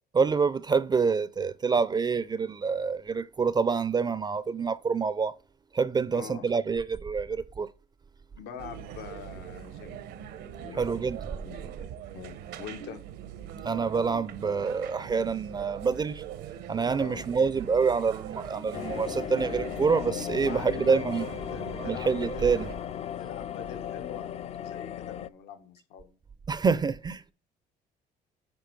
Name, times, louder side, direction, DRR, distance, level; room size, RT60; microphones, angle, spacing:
voice 1, 0.1-5.4 5.7-7.7 10.7-11.2 13.6-16.2 16.7-21.3 21.8-22.7 26.5-27.3, right 5 dB, 25° right, 0.4 m, -27 dB
voice 2, 6.1-6.4 8.3-10.0 10.6-10.9 11.4-11.8 12.1-13.0 17.0-17.3 20.4-22.9 23.2-26.1, left 7 dB, 80° left, 1.3 m, -44 dB
sound 1, 8.6-22.7, right 10 dB, 85° right, 1.0 m, -42 dB
sound 2, 18.7-25.3, left 9 dB, 40° left, 0.4 m, -36 dB
9.7 x 3.8 x 4.6 m
cardioid pair, 110°, 17 cm